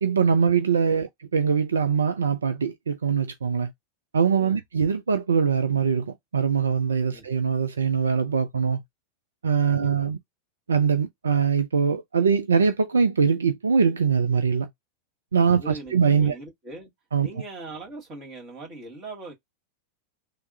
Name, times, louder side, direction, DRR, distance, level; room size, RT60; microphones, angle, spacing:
voice 1, 0.0-3.7 4.1-8.8 9.4-10.2 10.7-14.7 15.3-16.4 17.1-17.3, right 6 dB, 70° right, 0.3 m, -22 dB
voice 2, 9.7-10.1 15.4-16.9 17.2-19.3, right 2 dB, 35° right, 1.9 m, -41 dB
3.4 x 2.0 x 2.5 m
figure-of-eight pair, 90°, 0 cm